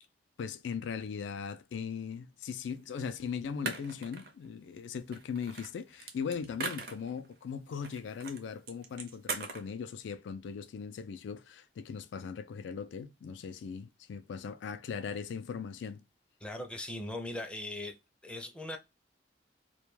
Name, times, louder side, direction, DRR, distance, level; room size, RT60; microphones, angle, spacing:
voice 1, 0.4-16.0, left 6 dB, 75° left, 0.3 m, -39 dB
sound 1, 3.0-3.1 3.7-4.5 5.1-7.3 7.8-8.4 8.7-9.7, right 4 dB, 55° right, 0.5 m, -39 dB
voice 2, 16.4-18.0 18.2-18.8, left 1 dB, 5° left, 0.4 m, -39 dB
2.2 x 2.2 x 3.0 m
head